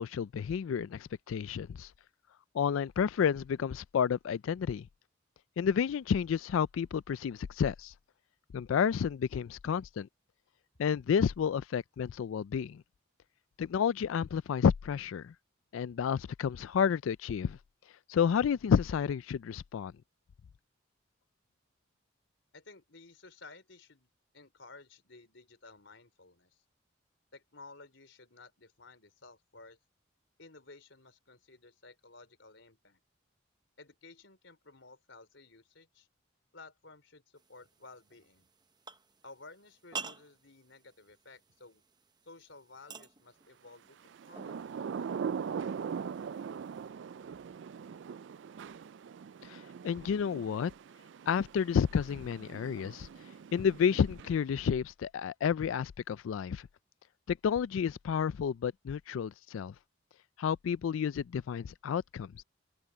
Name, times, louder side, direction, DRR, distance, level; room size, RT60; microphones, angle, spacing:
voice 1, 0.0-1.9 2.5-4.9 5.6-7.9 8.5-10.1 10.8-12.8 13.6-15.3 15.7-17.6 18.1-19.9 49.4-50.7 51.3-53.1 53.5-56.7 57.3-59.7 60.4-62.4, left 7 dB, 85° left, 0.3 m, -30 dB
voice 2, 22.5-26.6 27.3-29.8 30.4-33.0 33.8-36.1 36.5-38.5 39.2-41.8 42.2-44.7, left 3 dB, 70° left, 3.8 m, -55 dB
sound 1, 37.4-46.9, right 5 dB, 20° right, 0.8 m, -50 dB
Thunder / Rain, 44.1-54.6, right 6 dB, 65° right, 0.3 m, -41 dB
open air
head